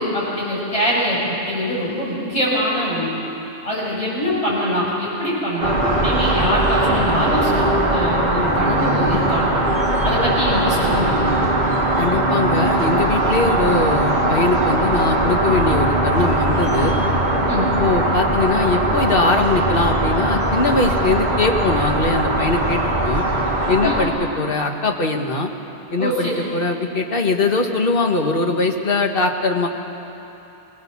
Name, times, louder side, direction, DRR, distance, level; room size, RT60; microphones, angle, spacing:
voice 1, 0.0-3.1 3.6-9.5 10.0-11.4 17.5-17.7 23.8-24.0 26.0-26.4, equal, 30° left, -7 dB, 7.2 m, -23 dB
sound 1, 5.6-24.1, right 1 dB, 40° right, 2.6 m, -20 dB
voice 2, 12.0-16.9 17.8-23.2 23.7-25.5 25.9-29.7, left 3 dB, 50° left, 3 dB, 1.7 m, -21 dB
22.0 x 19.0 x 7.3 m, 2.9 s
omnidirectional pair, 1.2 m